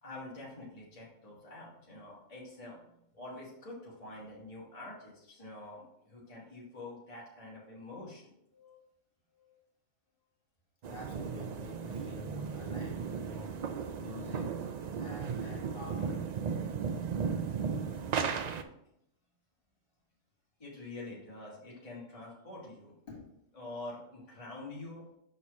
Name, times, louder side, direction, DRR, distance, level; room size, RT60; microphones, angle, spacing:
voice 1, 0.0-2.8 3.1-8.3 20.6-22.9 23.5-25.2, left 2 dB, 30° left, -6 dB, 1.6 m, -46 dB
voice 2, 8.5-8.8 9.3-9.6 10.8-14.6 15.0-16.2 23.1-23.3, left 3 dB, 45° left, -4 dB, 2.1 m, -47 dB
sound 1, 10.8-18.6, right 6 dB, 70° right, 0.4 m, -36 dB
6.5 x 4.3 x 4.7 m, 0.78 s
omnidirectional pair, 1.3 m